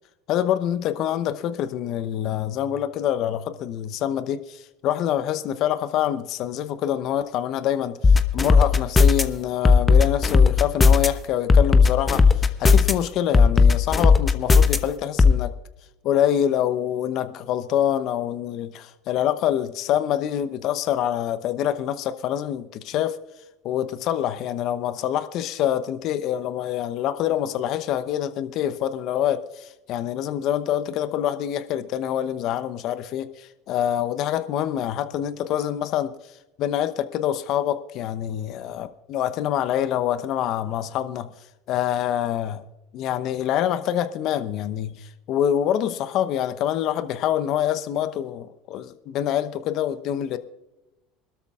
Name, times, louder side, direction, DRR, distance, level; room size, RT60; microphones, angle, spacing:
voice 1, 0.3-12.2 12.6-15.5 16.0-23.2 23.6-36.1 36.6-41.3 41.7-42.6 42.9-50.4, left 10 dB, 55° left, 12 dB, 0.9 m, -26 dB
sound 1, 8.0-9.2 9.6-11.1 11.5-12.9 13.3-14.8 15.2-15.3, left 4 dB, 20° left, 1.0 m, -14 dB
26.0 x 12.5 x 2.5 m, 0.96 s
hypercardioid pair, 75°, 0 cm